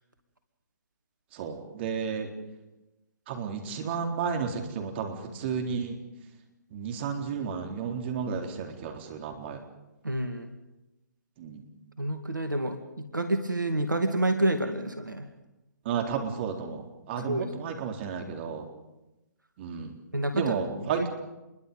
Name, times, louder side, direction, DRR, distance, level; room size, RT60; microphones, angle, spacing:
voice 1, 1.3-2.3 3.3-6.0 6.7-9.6 11.4-11.6 15.9-18.7 19.6-20.0 20.3-21.1, right 6 dB, 35° right, 3 dB, 3.8 m, -32 dB
voice 2, 10.0-10.5 12.0-15.3 17.2-17.5 20.1-20.6 21.0-21.1, right 1 dB, 85° right, 7 dB, 2.3 m, -28 dB
27.5 x 22.5 x 5.5 m, 0.99 s
figure-of-eight pair, 135°, 10 cm